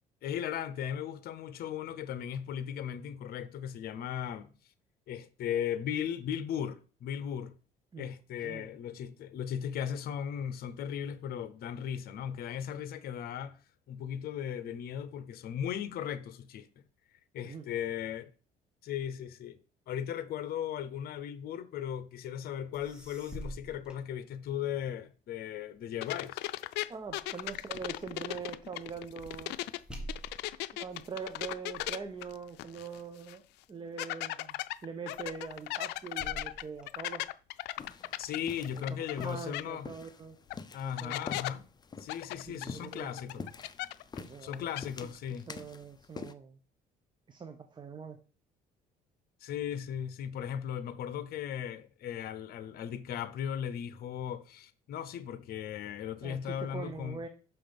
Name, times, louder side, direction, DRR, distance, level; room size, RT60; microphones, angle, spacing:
voice 1, 0.2-4.5 5.1-7.5 8.0-13.6 13.9-16.7 17.3-18.3 18.8-19.6 19.9-26.4 38.2-39.9 40.7-41.6 42.0-43.5 44.4-45.5 49.4-57.2, left 9 dB, 65° left, 0.8 m, -37 dB
sound 1, 22.7-24.8 25.3-33.9 34.5-34.8 35.1-37.6 38.1-39.1, right 1 dB, 5° right, 1.8 m, -50 dB
sound 2, 26.0-29.8 30.1-33.0 33.3-33.4 34.0-39.3 39.5-39.6 40.5-40.6 41.0-41.5 42.1-44.2 44.4-44.8, left 17 dB, 85° left, 0.4 m, -37 dB
voice 2, 26.9-29.6 30.7-37.2 39.1-40.4 40.8-41.3 42.5-43.5 44.2-44.7 45.0-46.6 47.3-48.2 56.2-57.3, right 5 dB, 25° right, 0.9 m, -43 dB
sound 3, 37.8-46.3, left 4 dB, 25° left, 0.6 m, -47 dB
6.0 x 5.8 x 5.2 m
cardioid pair, 110°, 17 cm